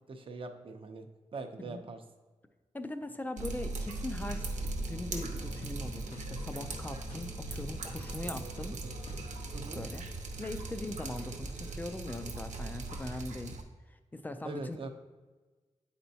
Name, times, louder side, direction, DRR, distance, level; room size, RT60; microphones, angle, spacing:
voice 1, 0.1-1.1 1.3-2.0 8.8-9.0 9.5-9.8 14.4-14.9, right 3 dB, 45° right, 6 dB, 0.6 m, -42 dB
voice 2, 2.7-4.5 4.8-8.8 9.8-10.0 10.4-13.6 14.1-14.9, left 2 dB, 15° left, 8 dB, 0.3 m, -40 dB
Drip, 3.4-13.6, right 2 dB, 90° right, 0.8 m, -39 dB
sound 1, 4.2-9.4, left 1 dB, 60° left, 0.7 m, -48 dB
9.2 x 4.3 x 2.7 m, 1.3 s
wide cardioid pair, 170°, 12 cm